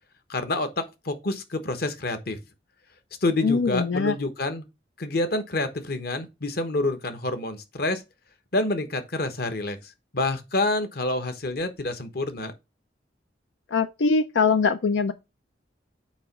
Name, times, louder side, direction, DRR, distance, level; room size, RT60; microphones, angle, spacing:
voice 1, 0.3-2.4 3.2-4.7 5.0-8.0 8.5-12.5, left 2 dB, 55° left, 1.2 m, -28 dB
voice 2, 3.4-4.2 13.7-15.1, left 4 dB, 90° left, 0.5 m, -22 dB
8.7 x 3.0 x 5.8 m
head